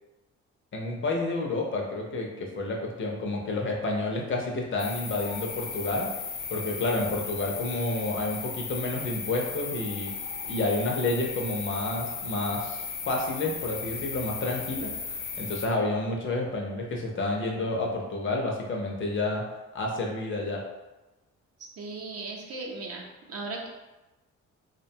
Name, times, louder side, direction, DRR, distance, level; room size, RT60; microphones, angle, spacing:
voice 1, 0.7-6.1 6.5-10.1 10.5-12.8 13.1-14.9 15.4-19.4 19.7-20.6, left 2 dB, 40° left, 0 dB, 0.5 m, -29 dB
sound 1, 4.8-15.7, left 5 dB, 85° left, 0.5 m, -36 dB
voice 2, 21.6-23.7, right 3 dB, 50° right, -1 dB, 0.6 m, -37 dB
2.5 x 2.2 x 2.7 m, 1.1 s
cardioid pair, 90°, 30 cm